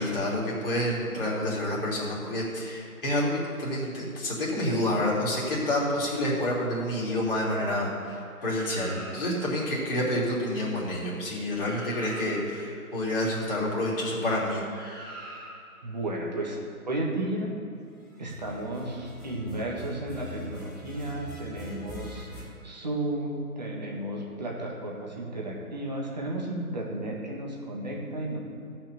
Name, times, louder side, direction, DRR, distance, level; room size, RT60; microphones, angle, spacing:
voice 1, 0.0-14.6, left 1 dB, 40° left, -5 dB, 3.0 m, -28 dB
sound 1, 8.4-9.5 11.2-11.3 11.5-12.7 14.7-15.8 18.2-22.4, left 1 dB, 15° left, 1.1 m, -43 dB
voice 2, 15.8-16.6 16.9-17.5 18.2-22.3 22.6-28.4, right 1 dB, 30° right, -2 dB, 1.5 m, -33 dB
14.0 x 6.0 x 6.6 m, 2.4 s
figure-of-eight pair, 170°, 44 cm